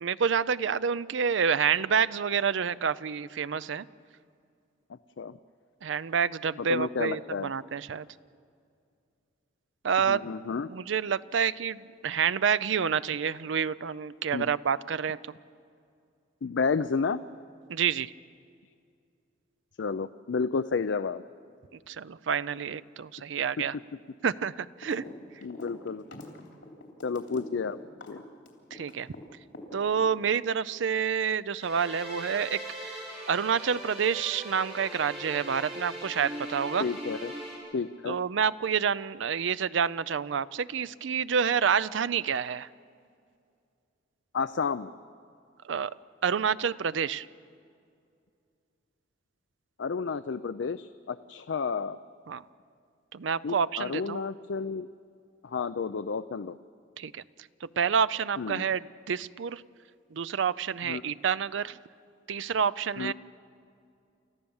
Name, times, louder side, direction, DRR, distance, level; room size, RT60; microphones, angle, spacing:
voice 1, 0.0-3.9 5.8-8.1 9.8-10.2 10.7-15.2 17.7-18.1 21.7-23.8 24.2-25.1 28.7-29.1 29.7-32.6 33.3-36.8 38.1-42.7 45.6-45.9 46.2-47.3 52.3-52.4 53.1-54.2 57.0-57.2 57.6-59.6 60.1-61.8 62.3-63.1, right 7 dB, 80° right, 17 dB, 0.5 m, -28 dB
voice 2, 6.7-7.5 10.1-10.7 14.3-14.5 16.4-17.2 19.8-21.2 25.4-26.0 27.0-27.8 28.1-28.2 36.8-37.3 37.7-38.2 44.3-44.9 49.8-52.0 53.4-54.9 55.4-56.6 58.4-58.7 60.9-61.0 63.0-63.1, left 5 dB, 70° left, 13 dB, 0.5 m, -31 dB
sound 1, 24.8-25.1 25.4-29.2 29.5-30.4, left 2 dB, 90° left, 3.3 m, -44 dB
sound 2, 31.6-37.6, right 1 dB, 35° right, 5.2 m, -40 dB
29.5 x 14.5 x 7.1 m, 2.4 s
head